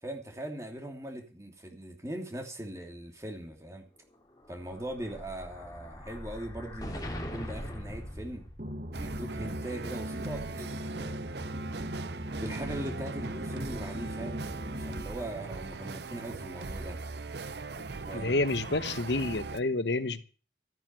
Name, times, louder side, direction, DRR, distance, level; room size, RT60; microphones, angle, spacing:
voice 1, 0.0-3.9 4.5-8.5 9.0-11.2 12.0-17.0 18.1-18.4, right 1 dB, 15° right, 2.9 m, -40 dB
Explosion, 4.4-9.0, equal, 20° left, 2.8 m, -41 dB
sound 1, 8.6-15.0, equal, 50° right, 1.5 m, -39 dB
sound 2, 8.9-19.6, right 4 dB, 75° right, 0.7 m, -40 dB
voice 2, 18.1-20.2, left 2 dB, 85° left, 1.1 m, -29 dB
14.5 x 9.2 x 7.6 m
head